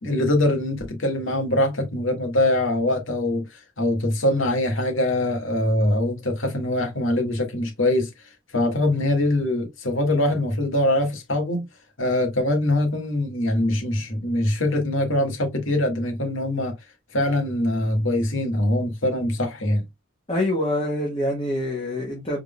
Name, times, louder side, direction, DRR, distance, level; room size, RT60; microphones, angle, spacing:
voice 1, 0.0-8.1 8.5-11.6 12.0-16.7 17.1-19.8, left 1 dB, 75° left, 1.8 m, -23 dB
voice 2, 20.3-22.4, left 1 dB, 25° left, 1.4 m, -25 dB
4.7 x 3.7 x 2.3 m
head